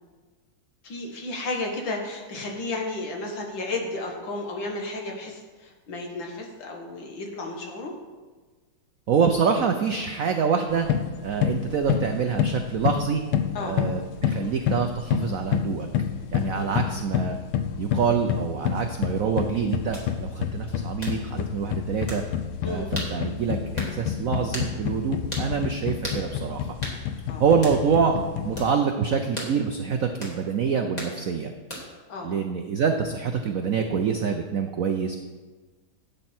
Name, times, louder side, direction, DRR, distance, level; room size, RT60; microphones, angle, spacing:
voice 1, 0.8-7.9 13.5-13.8 16.5-16.7 22.6-22.9 27.3-27.4 32.1-32.3, left 2 dB, 65° left, 1 dB, 2.2 m, -33 dB
voice 2, 9.1-10.9 11.2-13.2 13.6-15.9 16.3-17.4 17.8-22.2 22.6-26.7 27.4-28.2 28.4-31.5 32.2-35.2, right 6 dB, 75° right, 5 dB, 0.7 m, -26 dB
sound 1, 10.7-28.7, left 9 dB, 85° left, 1.5 m, -29 dB
sound 2, 19.9-20.1 21.0-21.2 22.1-22.2 23.0-23.1 23.8-24.0 24.5-24.7 25.3-25.5 26.0-26.2 26.8-27.0 27.6-27.8 28.6-28.7 29.4-29.5 30.2-30.4 31.0-31.2 31.7-32.0, equal, 20° left, 2.2 m, -35 dB
12.0 x 8.4 x 4.4 m, 1.3 s
omnidirectional pair, 2.3 m